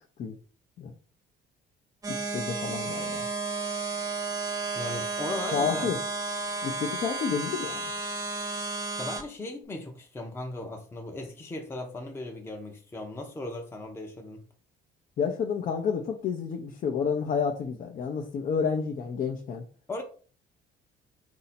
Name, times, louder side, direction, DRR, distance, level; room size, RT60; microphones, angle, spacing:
sound 1, 2.0-9.2, right 3 dB, 20° right, 0.8 m, -32 dB
voice 1, 2.1-3.2 5.5-6.0 6.6-7.8 15.2-19.6, left 6 dB, 50° left, 0.6 m, -30 dB
voice 2, 4.7-5.9 9.0-14.4 19.9-20.0, left 2 dB, 15° left, 0.7 m, -37 dB
4.1 x 2.7 x 4.2 m
cardioid pair, 110°, 17 cm